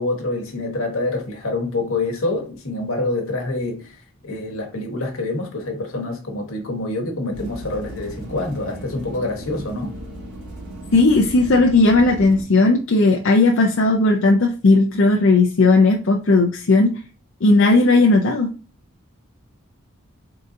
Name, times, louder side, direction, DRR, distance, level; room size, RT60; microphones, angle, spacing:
voice 1, 0.0-4.0 4.2-9.9, left 2 dB, 75° left, 1.2 m, -26 dB
sound 1, 7.3-12.4, right 1 dB, 90° right, 1.9 m, -35 dB
voice 2, 10.9-16.9 17.4-18.5, left 3 dB, 60° left, 0.5 m, -16 dB
3.8 x 3.7 x 2.6 m
head